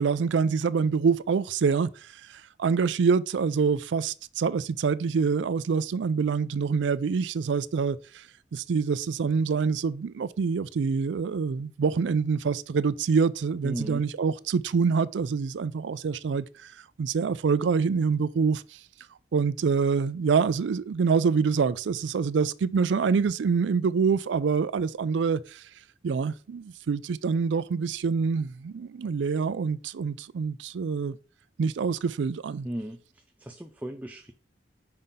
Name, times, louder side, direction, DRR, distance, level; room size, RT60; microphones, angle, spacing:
voice 1, 0.0-1.9 2.3-8.2 8.5-16.4 17.0-18.6 19.3-25.6 26.0-31.2 31.6-32.7, right 5 dB, 85° right, 0.4 m, -26 dB
voice 2, 13.6-14.1 32.6-34.3, equal, 10° right, 0.4 m, -36 dB
5.7 x 5.3 x 3.6 m
head